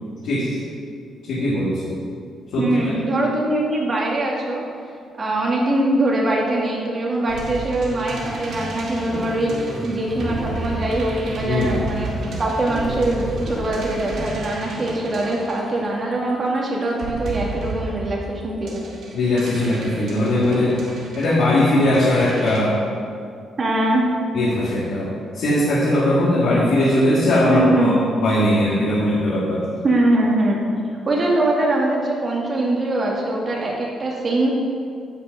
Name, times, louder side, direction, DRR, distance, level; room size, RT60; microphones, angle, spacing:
voice 1, 0.2-0.6 1.3-1.9 2.5-2.7 11.5-11.7 19.1-20.8 21.1-22.8 24.3-29.7, left 1 dB, 80° left, -8 dB, 2.2 m, -19 dB
voice 2, 2.6-4.6 5.2-12.1 12.4-18.9 23.6-24.0 27.4-28.0 29.8-30.6 31.1-34.5, right 2 dB, 40° right, -2 dB, 2.3 m, -22 dB
sound 1, 7.3-16.3 16.9-22.6, right 2 dB, 70° right, 2.0 m, -33 dB
sound 2, 7.9-14.3, equal, 10° left, 2.1 m, -33 dB
10.5 x 5.2 x 6.5 m, 2.3 s
cardioid pair, 90°, 0 cm